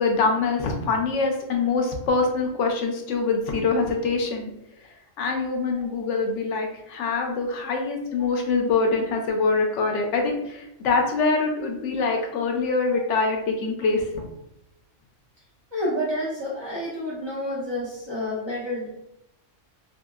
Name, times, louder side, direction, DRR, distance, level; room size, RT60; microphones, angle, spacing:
voice 1, 0.0-4.5 5.2-14.1, left 4 dB, 75° left, 2 dB, 0.9 m, -24 dB
voice 2, 8.2-8.6 13.0-13.1 15.7-18.9, left 1 dB, 35° right, -6 dB, 0.5 m, -30 dB
2.8 x 2.8 x 2.3 m, 0.83 s
omnidirectional pair, 1.3 m